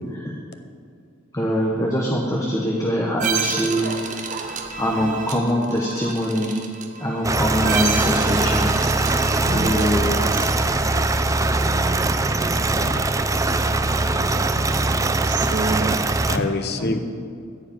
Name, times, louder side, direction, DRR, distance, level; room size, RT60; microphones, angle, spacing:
voice 1, 0.1-0.4 1.3-4.0 4.3-6.6 7.0-8.7 9.4-10.2 16.7-17.0, equal, 20° left, -2 dB, 1.1 m, -23 dB
sound 1, 3.2-10.4, right 5 dB, 40° right, 1.0 m, -30 dB
sound 2, 7.2-16.4, right 2 dB, 15° right, 0.4 m, -21 dB
voice 2, 9.4-9.9 11.7-12.1 13.8-16.0, right 4 dB, 60° right, 8 dB, 0.6 m, -31 dB
voice 3, 10.7-11.2 12.6-13.1 13.4-13.8 14.2-14.3 16.3-17.0, left 3 dB, 55° left, 8 dB, 0.6 m, -30 dB
14.5 x 4.9 x 8.9 m, 2.3 s
head